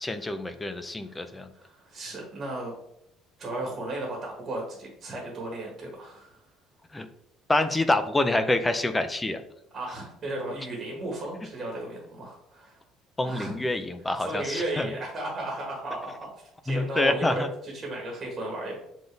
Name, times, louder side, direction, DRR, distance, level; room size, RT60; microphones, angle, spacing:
voice 1, 0.0-1.5 6.9-7.1 7.5-9.4 13.2-14.9 16.7-17.5, left 2 dB, 10° left, 9 dB, 0.5 m, -26 dB
voice 2, 1.1-2.7 3.4-6.4 9.7-12.8 13.2-13.6 14.2-16.3 16.6-18.8, right 1 dB, 20° right, -1 dB, 1.6 m, -35 dB
7.2 x 3.9 x 3.4 m, 0.77 s
cardioid pair, 170°, 0 cm